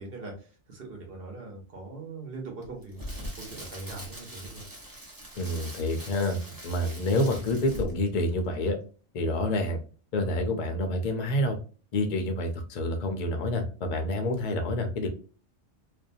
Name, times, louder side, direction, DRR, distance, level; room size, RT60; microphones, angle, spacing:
voice 1, 0.0-3.0 3.3-4.6, right 3 dB, 55° right, 0 dB, 1.1 m, -41 dB
Crackle, 2.6-8.1 8.4-8.6, equal, 20° right, 0.8 m, -41 dB
voice 2, 5.4-8.8 9.1-9.8 10.1-11.6 11.9-15.1, left 1 dB, 50° left, 4 dB, 0.5 m, -28 dB
2.6 x 2.2 x 2.6 m, 0.37 s
omnidirectional pair, 1.2 m